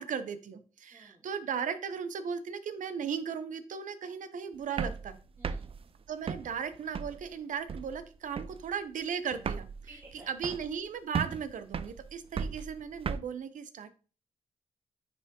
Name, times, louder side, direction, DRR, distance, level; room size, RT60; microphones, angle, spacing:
voice 1, 0.0-5.2 6.1-9.7 10.3-13.9, right 7 dB, 80° right, 10 dB, 0.7 m, -36 dB
voice 2, 0.9-1.3 4.1-4.2 5.4-5.9 9.9-10.5 12.3-12.6, right 2 dB, 20° right, -4 dB, 2.2 m, -55 dB
sound 1, 4.6-7.3 7.7-8.1 8.4-8.7 9.0-9.1 9.3-10.9 11.1-13.2, right 6 dB, 45° right, 0.4 m, -36 dB
9.6 x 3.4 x 2.9 m, 0.37 s
cardioid pair, 60°, 13 cm